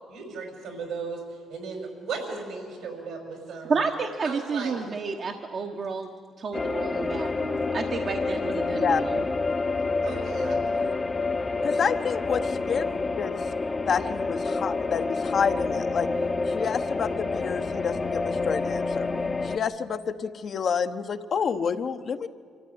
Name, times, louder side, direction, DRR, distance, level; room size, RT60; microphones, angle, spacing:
voice 1, 0.1-1.2 1.5-3.8 4.2-4.8 10.0-10.6, right 4 dB, 80° right, 3 dB, 5.8 m, -36 dB
voice 2, 3.7-6.1 6.4-9.2, right 4 dB, 50° right, 3 dB, 1.2 m, -30 dB
sound 1, 6.5-19.6, left 3 dB, 30° left, 0.9 m, -28 dB
voice 3, 11.6-12.8 13.2-13.3 13.9-16.1 16.5-19.1 19.4-22.3, left 6 dB, 55° left, 8 dB, 1.0 m, -28 dB
25.0 x 14.0 x 9.5 m, 2.1 s
cardioid pair, 90°, 0 cm